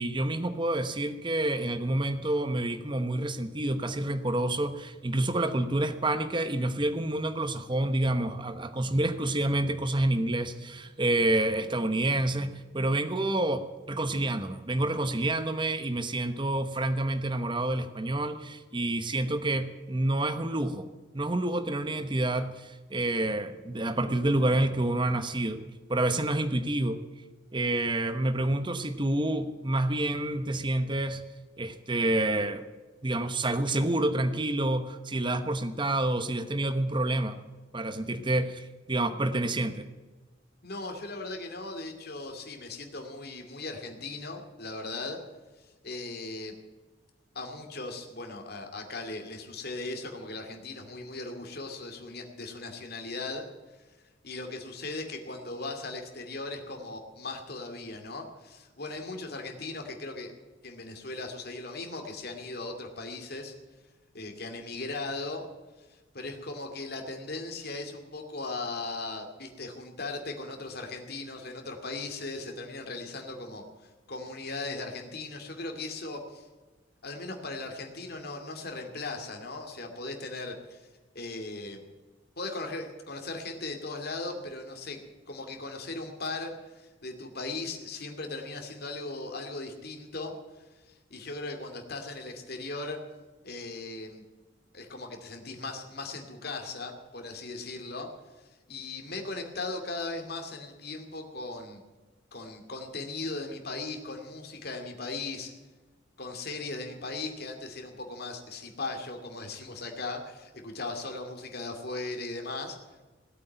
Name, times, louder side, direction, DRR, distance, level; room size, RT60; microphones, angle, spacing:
voice 1, 0.0-20.9 21.1-27.0 27.5-31.2 31.6-32.7 33.0-37.4 37.7-39.9, right 1 dB, 25° right, 9 dB, 0.9 m, -28 dB
voice 2, 40.6-45.2 45.6-46.6 47.3-53.4 54.2-60.3 60.6-63.5 64.1-65.4 65.8-76.5 77.0-80.9 81.1-81.8 82.4-85.0 85.3-93.0 93.4-94.2 94.7-98.1 98.4-101.8 102.3-105.5 106.2-112.8, left 3 dB, 55° left, 4 dB, 2.4 m, -38 dB
18.0 x 8.4 x 9.3 m, 1.3 s
head